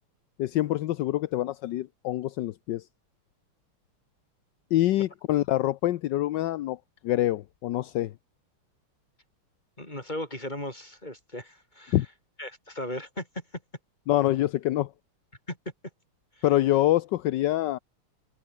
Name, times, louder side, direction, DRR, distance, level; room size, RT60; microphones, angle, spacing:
voice 1, 0.4-2.8 4.7-6.8 7.0-8.1 11.9-12.1 14.1-14.9 16.4-17.8, left 14 dB, 70° left, 1.2 m, -25 dB
voice 2, 9.8-12.0 12.4-13.4 15.5-15.6 16.4-16.5, left 1 dB, 20° left, 7.6 m, -37 dB
omnidirectional pair, 2.4 m